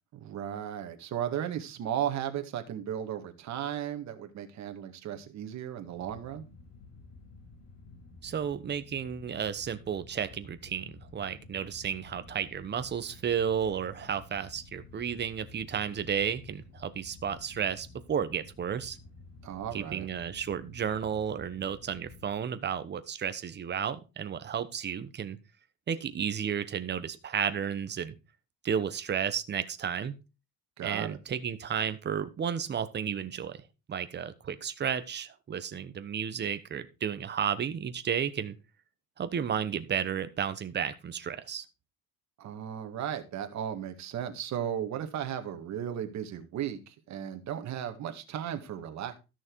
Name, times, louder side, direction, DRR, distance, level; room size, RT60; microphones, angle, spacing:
voice 1, 0.2-6.4 19.4-20.1 30.8-31.2 42.4-49.2, right 10 dB, 50° right, 6 dB, 1.9 m, -35 dB
sound 1, 5.9-22.3, left 3 dB, 40° left, 7.3 m, -52 dB
voice 2, 8.2-19.0 19.7-25.4 25.9-28.1 28.6-30.2 30.8-33.6 33.9-38.6 39.2-41.6, right 8 dB, 30° right, 11 dB, 1.1 m, -32 dB
13.5 x 6.3 x 4.6 m, 0.29 s
cardioid pair, 145°, 36 cm